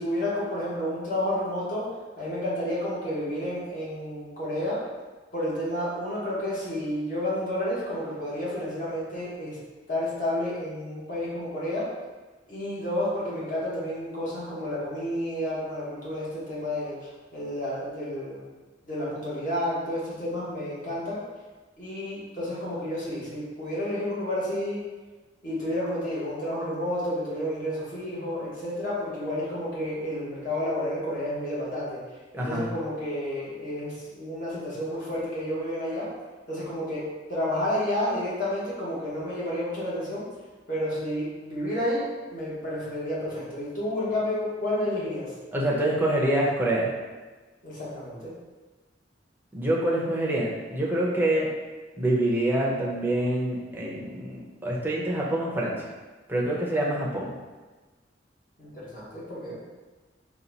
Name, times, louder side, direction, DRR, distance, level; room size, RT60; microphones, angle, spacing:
voice 1, 0.0-1.9 2.2-4.8 5.3-9.6 9.9-11.9 12.5-18.4 18.8-21.2 21.8-24.8 25.4-32.0 32.3-36.1 36.5-37.0 37.3-40.2 40.7-42.0 42.3-45.3 47.6-48.3 58.6-59.5, left 1 dB, 50° left, -8 dB, 1.4 m, -30 dB
voice 2, 32.3-32.7 45.5-46.9 49.5-51.5 52.0-55.8 56.3-57.3, right 1 dB, 10° right, -4 dB, 0.7 m, -26 dB
4.2 x 2.3 x 4.0 m, 1.3 s
head